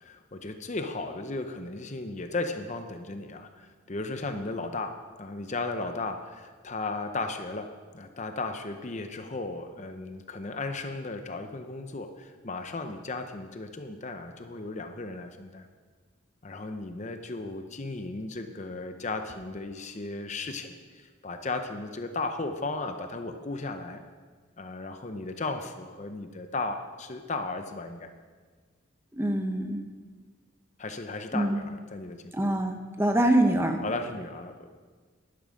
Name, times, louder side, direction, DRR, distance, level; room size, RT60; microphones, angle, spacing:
voice 1, 0.0-7.7 7.9-15.7 16.4-24.0 24.6-28.1 30.8-32.3 33.8-34.8, left 3 dB, 35° left, 7 dB, 0.7 m, -35 dB
voice 2, 29.1-29.8 31.3-31.6 32.3-33.8, right 1 dB, 10° right, 5 dB, 0.8 m, -25 dB
11.5 x 11.0 x 5.0 m, 1.5 s
head